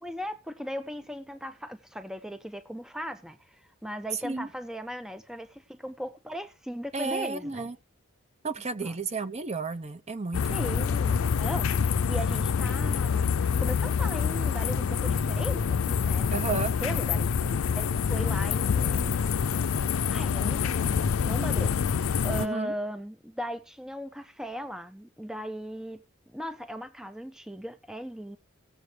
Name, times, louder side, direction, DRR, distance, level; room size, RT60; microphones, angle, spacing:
voice 1, 0.0-7.7 8.8-8.9 10.5-13.3 13.6-19.2 20.1-26.0 26.3-28.4, equal, 5° right, 0.5 m, -38 dB
voice 2, 6.9-7.8 8.4-10.8 16.3-16.7 22.4-22.7, right 4 dB, 30° right, 0.7 m, -32 dB
sound 1, 10.3-22.5, left 6 dB, 80° left, 0.4 m, -26 dB
18.0 x 7.3 x 3.3 m
head